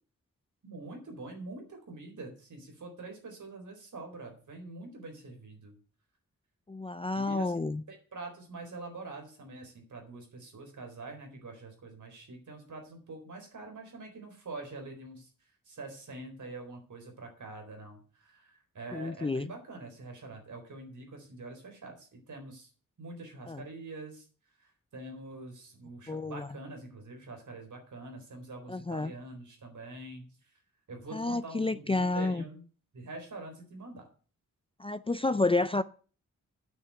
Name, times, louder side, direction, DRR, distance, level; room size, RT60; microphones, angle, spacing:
voice 1, 0.6-5.7 7.1-7.6 7.9-15.3 15.7-22.7 23.0-24.3 24.6-30.5 30.9-32.6 32.9-34.1, right 2 dB, 65° right, 4.2 m, -45 dB
voice 2, 6.7-7.8 18.9-19.5 23.5-23.7 26.1-26.5 28.7-29.1 31.1-32.5 34.8-35.8, left 3 dB, 15° left, 0.4 m, -30 dB
8.9 x 6.6 x 7.7 m
wide cardioid pair, 95°, 33 cm